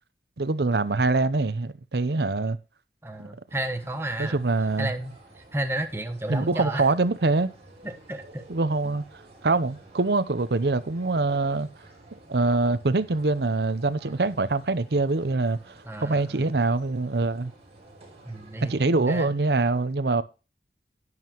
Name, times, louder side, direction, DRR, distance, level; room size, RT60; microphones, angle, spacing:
voice 1, 0.4-2.6 3.2-3.3 4.2-4.9 6.3-7.5 8.5-9.0 9.4-11.7 12.3-15.6 16.0-17.5 18.6-20.2, right 3 dB, 65° right, 0.7 m, -24 dB
voice 2, 3.0-4.4 4.8-5.1 5.5-6.9 7.8-8.4 8.8-8.9 15.8-16.6 18.2-19.3, right 1 dB, 15° right, 1.2 m, -32 dB
sound 1, 3.5-18.8, right 2 dB, 35° right, 4.9 m, -51 dB
10.5 x 9.6 x 3.0 m
head